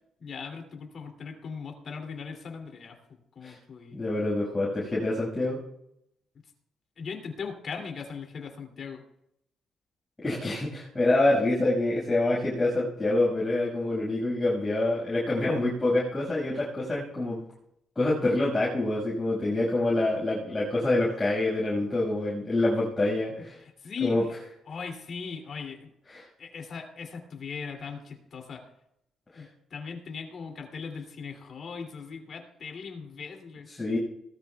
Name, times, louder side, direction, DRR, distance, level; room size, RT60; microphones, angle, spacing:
voice 1, 0.2-3.0 3.3-4.0 7.0-9.0 23.8-24.3 24.7-25.9 26.4-28.6 29.3-33.7, left 5 dB, 55° left, 3 dB, 2.7 m, -39 dB
voice 2, 3.9-5.6 10.2-17.4 18.0-23.6 24.0-24.2 26.1-26.3 29.3-29.4 33.7-34.0, left 2 dB, 20° left, -6 dB, 5.8 m, -26 dB
18.5 x 13.5 x 2.3 m, 0.80 s
cardioid pair, 90°, 0 cm